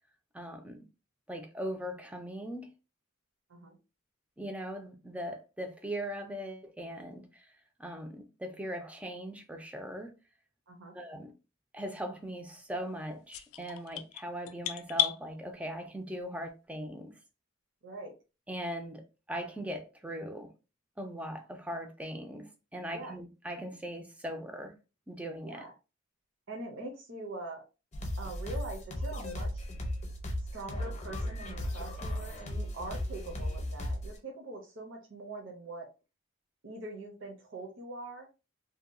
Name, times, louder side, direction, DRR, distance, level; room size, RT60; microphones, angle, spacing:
voice 1, 0.3-0.8 1.3-2.7 4.4-10.1 10.9-11.3 11.7-17.2 18.5-20.5 21.0-24.7 25.1-25.6, equal, 5° right, 0.4 m, -40 dB
sound 1, 13.3-15.2, left 12 dB, 85° left, 0.3 m, -32 dB
voice 2, 17.8-18.1 22.9-23.1 25.4-25.7 26.5-27.6 28.2-29.6 30.5-35.9 36.6-38.3, right 2 dB, 60° right, 0.6 m, -43 dB
sound 2, 27.9-34.2, left 1 dB, 35° left, 0.7 m, -36 dB
2.7 x 2.2 x 2.5 m
head